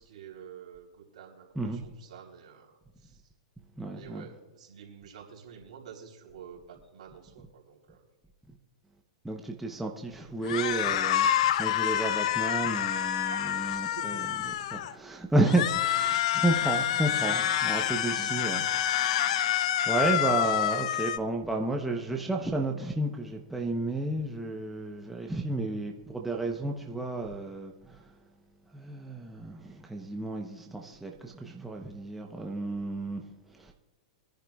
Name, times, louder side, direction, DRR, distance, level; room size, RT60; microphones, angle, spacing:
voice 1, 0.0-2.7 3.0-3.2 3.9-8.0 13.2-14.4, right 8 dB, 75° right, 3.4 m, -49 dB
voice 2, 3.8-4.3 9.2-11.3 11.6-19.5 19.9-28.0 28.7-33.3 33.6-33.7, right 2 dB, 5° right, 0.8 m, -32 dB
sound 1, 10.5-14.9 15.5-21.2, left 11 dB, 60° left, 0.5 m, -27 dB
24.5 x 10.5 x 2.3 m
hypercardioid pair, 145°, 4 cm